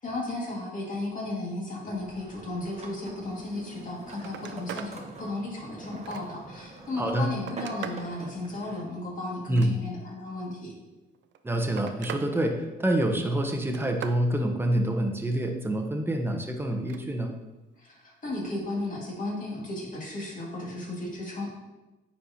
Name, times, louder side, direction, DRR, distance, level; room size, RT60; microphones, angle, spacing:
voice 1, 0.0-10.7 17.8-21.5, left 2 dB, 40° left, -3 dB, 2.0 m, -35 dB
sound 1, 1.9-8.8, right 2 dB, 35° right, 1.0 m, -44 dB
Telephone, 3.7-3.8 4.1-5.0 5.4-6.5 7.1-8.1 9.3-10.2 11.1-12.3 12.6-13.1 13.5-14.2 16.7-17.0 18.4-18.6, right 8 dB, 65° right, 0.5 m, -41 dB
voice 2, 7.0-7.3 9.5-9.8 11.4-17.3, right 1 dB, 10° right, 3 dB, 0.9 m, -27 dB
9.1 x 4.4 x 2.8 m, 1.1 s
cardioid pair, 90°, 20 cm